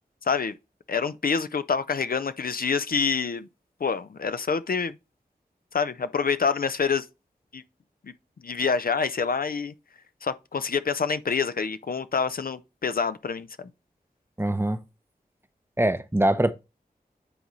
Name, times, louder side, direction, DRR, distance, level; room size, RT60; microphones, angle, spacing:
voice 1, 0.2-0.5 0.9-3.5 3.8-5.0 5.7-7.1 7.5-7.6 8.0-8.1 8.4-9.7 10.2-13.7, left 5 dB, 65° left, 0.6 m, -27 dB
voice 2, 14.4-14.8 15.8-16.5, right 1 dB, 15° right, 0.7 m, -23 dB
9.8 x 4.0 x 3.1 m
wide cardioid pair, 50°, 16 cm